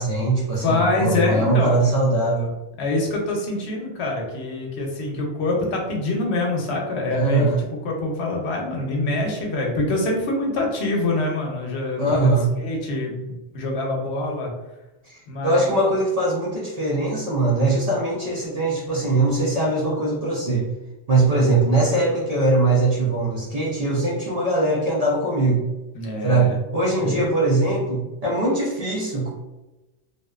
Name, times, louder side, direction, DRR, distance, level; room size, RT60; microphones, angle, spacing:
voice 1, 0.0-2.5 7.1-7.6 12.0-12.5 15.1-20.7 21.1-25.6 26.2-29.3, right 2 dB, 50° right, -4 dB, 0.5 m, -21 dB
voice 2, 0.6-1.8 2.8-12.3 12.6-14.5 15.3-15.7 25.9-26.6 27.0-27.2, left 2 dB, 85° left, 0 dB, 0.9 m, -25 dB
2.6 x 2.1 x 2.3 m, 1.0 s
omnidirectional pair, 1.1 m